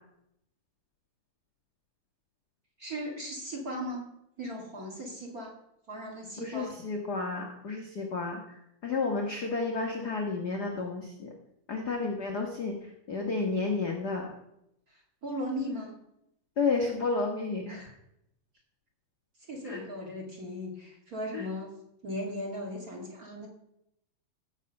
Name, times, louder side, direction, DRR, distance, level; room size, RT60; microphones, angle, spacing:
voice 1, 2.8-4.1 4.4-5.6 5.9-6.7 14.9-16.0 17.7-18.0 19.5-21.8 22.0-23.5, equal, 30° right, 0 dB, 1.9 m, -37 dB
voice 2, 6.4-11.3 11.7-14.3 16.6-17.9 19.6-19.8 21.3-21.5, left 3 dB, 65° left, 1 dB, 0.9 m, -31 dB
16.5 x 6.8 x 5.4 m, 0.80 s
omnidirectional pair, 3.9 m